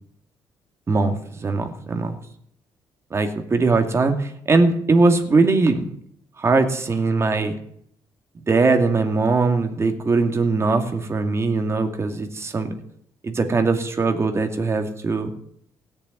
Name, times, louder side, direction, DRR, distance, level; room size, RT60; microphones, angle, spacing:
voice 1, 0.9-2.2 3.1-6.0 6.4-7.6 8.4-12.7 13.2-15.3, right 3 dB, 30° right, 5 dB, 2.5 m, -21 dB
17.5 x 7.0 x 9.7 m, 0.68 s
cardioid pair, 105°, 9 cm